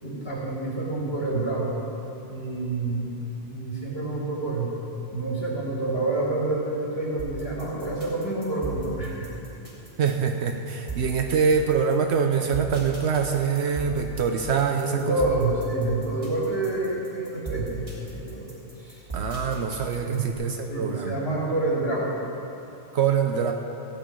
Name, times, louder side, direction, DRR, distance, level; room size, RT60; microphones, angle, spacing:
voice 1, 0.0-1.7 2.3-3.1 3.4-4.7 5.1-9.3 14.9-18.5 18.8-19.0 20.0-20.2 20.7-22.1, right 2 dB, 60° left, -5 dB, 2.9 m, -28 dB
sound 1, 7.2-20.3, right 2 dB, 30° right, 3.4 m, -37 dB
voice 2, 10.0-15.2 19.1-21.2 22.9-23.5, right 6 dB, 75° right, 4 dB, 1.0 m, -24 dB
15.5 x 5.5 x 9.1 m, 3.0 s
omnidirectional pair, 1.1 m